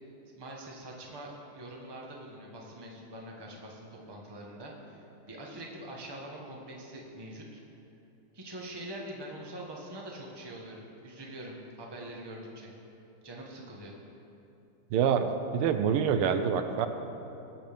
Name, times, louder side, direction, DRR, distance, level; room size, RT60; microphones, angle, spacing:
voice 1, 0.4-7.6 8.3-12.7 13.2-13.9, right 1 dB, 15° right, -1 dB, 0.9 m, -44 dB
voice 2, 14.9-16.9, right 7 dB, 85° right, 8 dB, 1.5 m, -26 dB
19.5 x 7.6 x 3.5 m, 2.9 s
omnidirectional pair, 2.4 m